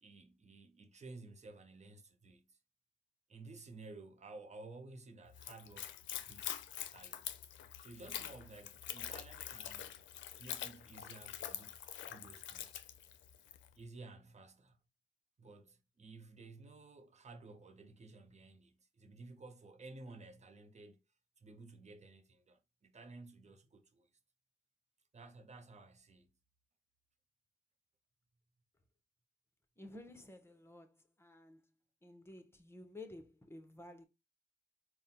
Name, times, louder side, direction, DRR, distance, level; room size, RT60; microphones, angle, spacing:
voice 1, 0.0-2.6 3.3-6.7 6.9-7.3 7.8-9.9 10.4-12.8 13.7-14.8 15.4-21.0 21.4-24.1 25.1-26.3, right 3 dB, 40° right, 0.8 m, -54 dB
Splash splatter / Trickle dribble, 5.3-13.7, left 11 dB, 85° left, 0.4 m, -45 dB
voice 2, 29.8-31.6 32.0-34.1, left 2 dB, 15° left, 1.0 m, -53 dB
4.1 x 2.2 x 3.8 m
cardioid pair, 55°, 19 cm